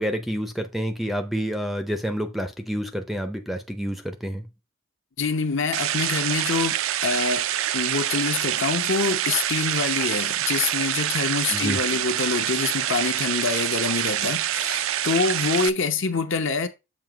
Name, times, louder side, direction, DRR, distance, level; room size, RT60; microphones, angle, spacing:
voice 1, 0.0-4.4 11.5-11.8, equal, ahead, 0.5 m, -28 dB
voice 2, 5.2-7.5 7.7-16.7, left 4 dB, 55° left, 0.8 m, -26 dB
sound 1, 5.7-15.7, right 12 dB, 65° right, 0.4 m, -26 dB
7.4 x 2.8 x 5.0 m
head